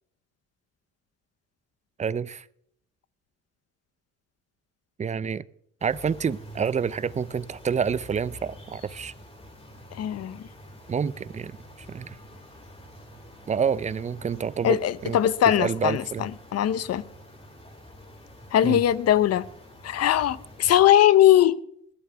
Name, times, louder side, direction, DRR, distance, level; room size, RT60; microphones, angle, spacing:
voice 1, 2.0-2.4 5.0-5.4 5.8-9.1 10.9-11.6 11.9-12.2 13.5-15.2 15.6-16.3 18.6-18.8, right 6 dB, 25° right, 0.5 m, -28 dB
sound 1, 5.8-20.9, equal, 20° left, 4.7 m, -47 dB
voice 2, 9.9-10.4 14.6-17.0 18.5-19.5 19.8-21.6, left 11 dB, 55° left, 0.9 m, -20 dB
20.5 x 12.5 x 3.5 m
cardioid pair, 105°, 29 cm